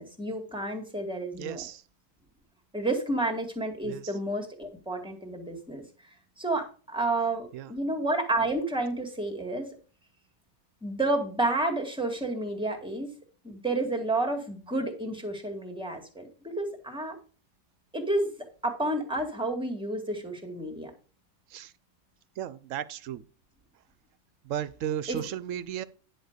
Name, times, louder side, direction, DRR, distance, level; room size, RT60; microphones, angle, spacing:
voice 1, 0.0-1.6 2.7-5.8 6.4-9.7 10.8-13.1 13.4-17.2 17.9-18.3 18.6-20.9 25.1-25.3, right 2 dB, 5° right, 1.9 m, -30 dB
voice 2, 1.4-1.8 3.8-4.1 7.5-7.7 21.5-21.7 22.4-23.2 24.4-25.8, right 10 dB, 70° right, 1.0 m, -35 dB
10.5 x 4.2 x 6.6 m
omnidirectional pair, 1.5 m